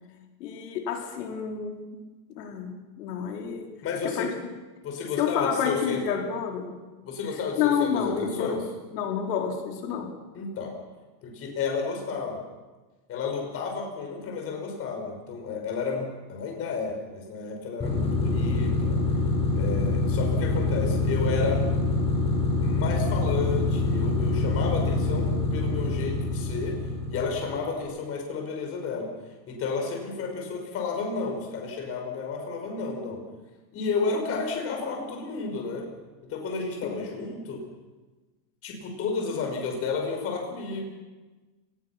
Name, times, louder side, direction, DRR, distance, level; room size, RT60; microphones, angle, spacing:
voice 1, 0.4-2.1 2.3-3.7 4.0-4.3 5.2-6.8 7.5-8.6 8.9-10.1 36.8-37.0, left 7 dB, 75° left, 2 dB, 4.3 m, -29 dB
voice 2, 3.8-4.3 4.8-6.0 7.0-8.6 10.3-10.7 11.2-12.4 13.1-19.0 19.5-21.7 22.6-26.8 27.1-29.1 29.5-33.2 33.7-35.8 36.3-37.6 38.6-40.8, left 4 dB, 30° left, 2 dB, 5.9 m, -31 dB
sound 1, 17.8-27.6, left 2 dB, 15° left, 3.6 m, -25 dB
30.0 x 20.0 x 6.0 m, 1.2 s
supercardioid pair, 165°, 49 cm